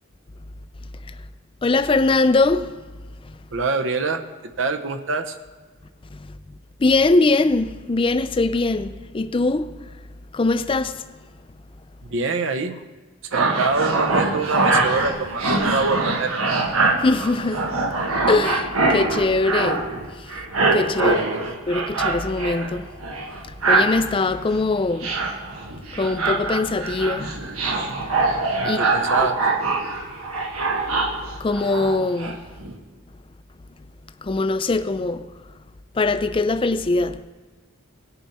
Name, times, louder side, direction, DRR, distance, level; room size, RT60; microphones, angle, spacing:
voice 1, 1.6-2.7 6.1-6.4 6.8-9.7 10.3-11.0 17.0-17.7 18.3-19.9 20.2-20.3 20.7-21.3 21.7-22.9 23.7-25.1 26.0-27.3 28.2-28.3 28.6-28.8 31.4-32.4 34.2-35.3 36.0-37.2, left 3 dB, 25° left, 0.4 m, -21 dB
voice 2, 3.5-5.4 12.0-12.8 13.3-16.4 21.0-21.5 28.6-29.4, right 3 dB, 60° right, 0.7 m, -25 dB
sound 1, 13.3-20.0 20.3-22.7 23.0-24.0 24.5-24.7 25.0-32.3 32.6-32.7, right 3 dB, 90° right, 1.4 m, -23 dB
19.0 x 6.8 x 4.2 m
head